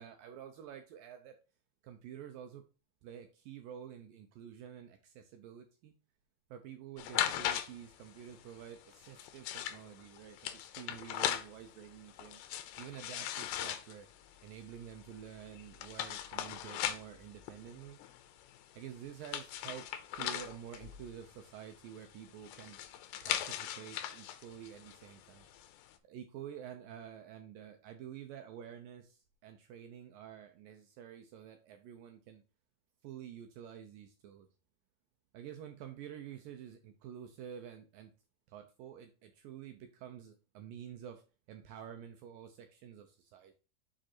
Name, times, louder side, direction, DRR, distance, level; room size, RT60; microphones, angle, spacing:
voice 1, 0.0-1.4 1.8-2.6 3.0-5.9 6.5-12.4 12.8-14.1 14.4-18.0 18.7-22.8 23.2-25.6 26.0-32.4 33.0-34.5 35.3-38.1 38.5-41.2 41.5-43.5, right 9 dB, 80° right, 6 dB, 2.1 m, -49 dB
sound 1, 7.0-25.9, left 11 dB, 80° left, 2.5 m, -40 dB
6.4 x 5.1 x 4.3 m, 0.34 s
omnidirectional pair, 4.7 m